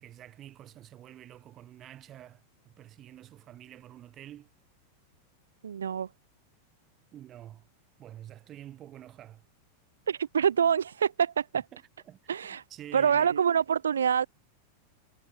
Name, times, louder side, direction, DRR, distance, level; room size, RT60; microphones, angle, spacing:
voice 1, 0.0-4.5 7.1-7.7 8.0-9.4 11.5-12.2 12.7-13.3, right 12 dB, 30° right, 3.3 m, -48 dB
voice 2, 5.6-6.1 10.1-11.6 12.3-12.6 12.9-14.3, right 7 dB, 70° right, 0.4 m, -26 dB
figure-of-eight pair, 90°, 0 cm